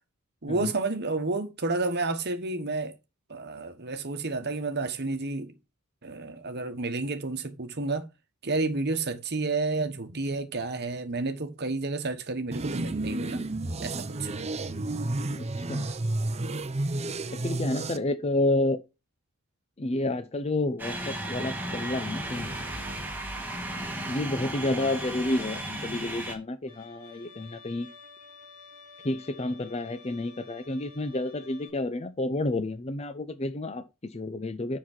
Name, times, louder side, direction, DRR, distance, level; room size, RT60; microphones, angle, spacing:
voice 1, 0.4-2.9 3.3-5.5 6.0-8.1 8.4-13.4 13.8-14.3, right 3 dB, 45° right, 1.3 m, -30 dB
sound 1, 12.5-18.0, right 2 dB, 30° right, 0.7 m, -31 dB
voice 2, 15.4-15.9 17.3-18.8 19.8-22.5 24.1-27.9 29.0-34.8, left 2 dB, 30° left, 0.6 m, -30 dB
sound 2, 20.8-26.4, right 1 dB, 10° right, 2.0 m, -35 dB
Bowed string instrument, 26.7-31.7, left 4 dB, 70° left, 4.1 m, -51 dB
7.2 x 6.0 x 4.3 m
head